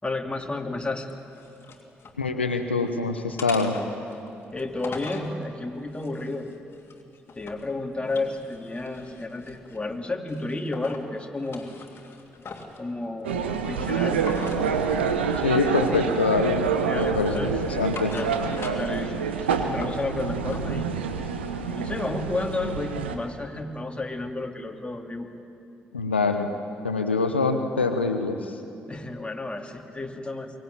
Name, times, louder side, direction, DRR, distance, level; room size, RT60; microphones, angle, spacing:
voice 1, 0.0-1.1 4.5-6.5 7.3-11.7 12.8-14.2 16.9-17.5 18.1-18.3 18.8-20.9 21.6-25.3 28.9-30.5, left 2 dB, 20° left, 2 dB, 2.8 m, -32 dB
sound 1, 1.0-2.2 2.6-3.0 3.4-5.3 5.9-7.7 8.0-9.9 10.3-11.1 11.4-12.8 14.2-14.6 15.3-15.5 15.9-16.6 17.0-19.0 19.3-20.7, left 4 dB, 45° left, 2.9 m, -42 dB
voice 2, 2.2-3.8 15.4-18.2 25.9-26.5 26.8-28.6, left 4 dB, 90° left, 7 dB, 0.9 m, -25 dB
sound 2, 13.2-23.2, right 6 dB, 85° right, 1.1 m, -27 dB
23.5 x 18.5 x 8.9 m, 2.7 s
figure-of-eight pair, 40°, 6 cm